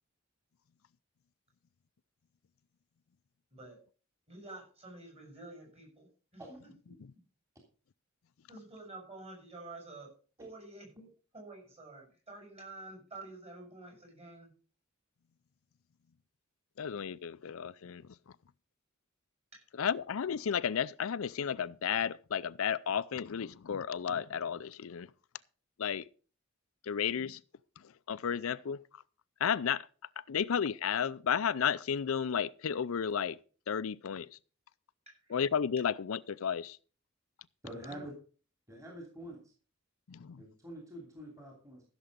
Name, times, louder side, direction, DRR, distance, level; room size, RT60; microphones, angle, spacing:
voice 1, 3.5-3.8 4.3-6.4 8.5-10.1 10.4-14.5 19.5-19.6 35.1-35.4 37.8-38.1, right 2 dB, 30° right, 7.0 m, -49 dB
voice 2, 16.8-18.1 19.8-25.1 25.8-26.1 26.8-27.4 27.8-28.8 29.4-29.9 30.3-33.4 33.7-34.4 35.3-36.8 40.1-40.4, left 7 dB, 80° left, 0.5 m, -33 dB
voice 3, 37.6-38.1 38.7-39.4 40.4-41.8, right 1 dB, 15° right, 2.9 m, -46 dB
15.0 x 7.0 x 5.1 m
head